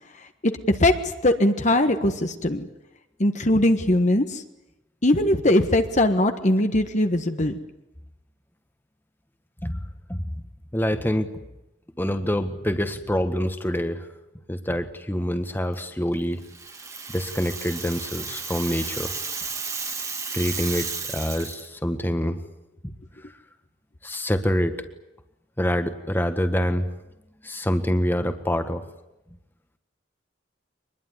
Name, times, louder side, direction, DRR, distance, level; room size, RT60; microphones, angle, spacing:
voice 1, 0.8-2.7 3.2-4.4 5.0-7.5, left 1 dB, 40° left, 7 dB, 1.5 m, -20 dB
voice 2, 10.1-10.4 10.7-11.3 12.0-14.1 14.5-16.4 17.1-19.1 20.3-22.4 24.0-24.8 25.6-26.9 27.4-28.8, equal, 10° left, 8 dB, 1.6 m, -26 dB
Rattle (instrument), 16.4-21.6, right 4 dB, 15° right, 1.9 m, -33 dB
24.5 x 21.0 x 9.9 m, 0.91 s
head